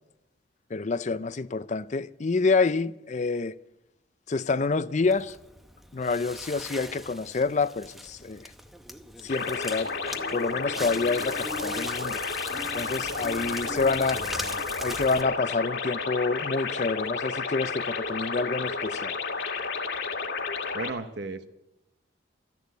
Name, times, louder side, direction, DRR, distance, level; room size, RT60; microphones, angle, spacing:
voice 1, 0.7-3.6 4.3-5.4 5.9-8.5 9.2-12.2 12.7-14.2 14.8-19.2, left 4 dB, 40° left, 0.5 m, -28 dB
Crackle, 5.0-15.2, equal, ahead, 0.8 m, -40 dB
sound 1, 9.3-20.9, left 4 dB, 60° left, 2.0 m, -32 dB
voice 2, 20.7-21.5, right 3 dB, 60° right, 0.9 m, -34 dB
13.5 x 10.5 x 8.3 m
head